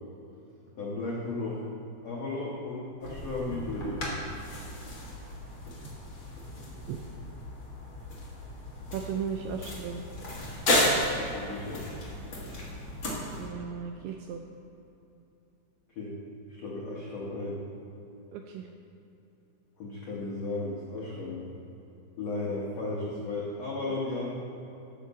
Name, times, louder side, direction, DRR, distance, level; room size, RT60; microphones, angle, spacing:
voice 1, 0.8-1.6 2.0-4.2 11.2-11.8 15.9-16.1 16.5-17.6 19.8-21.4 22.2-24.4, left 2 dB, 80° left, -5 dB, 1.5 m, -35 dB
sound 1, 3.0-13.5, left 1 dB, 45° left, 1.6 m, -33 dB
voice 2, 8.9-10.0 13.4-14.4 18.3-18.7, right 7 dB, 85° right, 4 dB, 2.3 m, -36 dB
14.5 x 6.5 x 4.2 m, 2.9 s
omnidirectional pair, 5.0 m